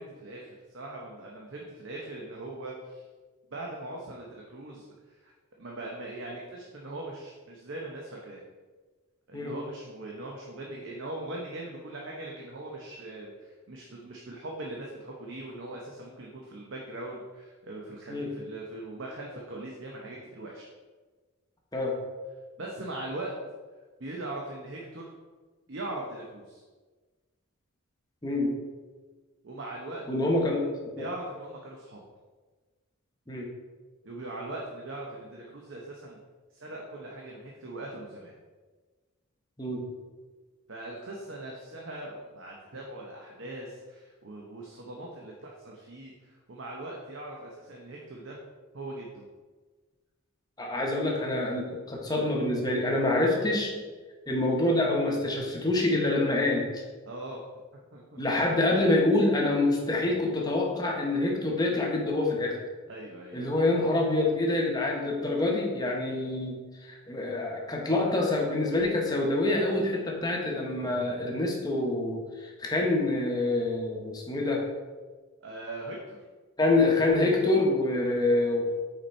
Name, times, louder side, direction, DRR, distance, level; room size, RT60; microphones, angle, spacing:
voice 1, 0.0-3.0 3.5-5.3 5.6-8.4 9.3-20.7 22.6-23.3 24.0-25.1 25.7-26.6 29.4-30.0 31.0-32.0 34.0-36.2 36.5-38.3 40.7-48.4 48.7-49.2 57.1-57.4 57.9-58.2 62.9-63.5 75.4-76.2, right 2 dB, 55° right, -2 dB, 0.8 m, -40 dB
voice 2, 30.1-30.7 31.0-31.1 33.3-33.5 39.6-39.8 50.6-53.7 54.3-56.8 58.2-62.6 63.3-66.5 66.8-74.6 76.6-78.6, left 2 dB, 20° left, -1 dB, 0.9 m, -26 dB
5.8 x 4.3 x 4.3 m, 1.4 s
head